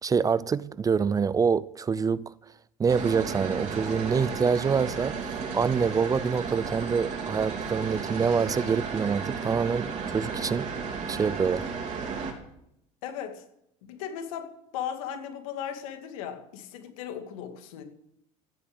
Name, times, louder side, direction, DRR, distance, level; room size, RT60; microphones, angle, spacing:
voice 1, 0.0-2.3 2.8-10.7 11.1-11.7, right 6 dB, 20° right, 0.4 m, -26 dB
sound 1, 2.9-12.3, right 5 dB, 40° right, 4.1 m, -33 dB
voice 2, 13.0-13.4 13.8-17.8, left 9 dB, 85° left, 2.4 m, -37 dB
15.0 x 8.3 x 8.0 m
supercardioid pair, 110°, 17 cm